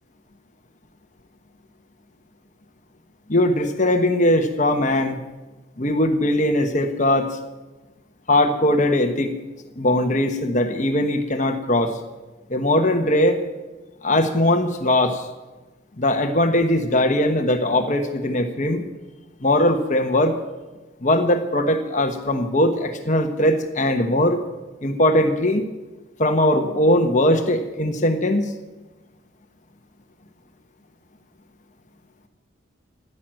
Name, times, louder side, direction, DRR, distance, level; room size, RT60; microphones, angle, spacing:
voice 1, 3.3-5.2 5.8-7.4 8.3-9.3 9.7-12.0 12.5-13.4 14.0-15.3 16.0-18.8 19.4-20.4 21.0-24.4 24.8-25.7 26.2-28.5, left 1 dB, 35° left, 6 dB, 1.2 m, -20 dB
15.5 x 10.5 x 7.7 m, 1.2 s
head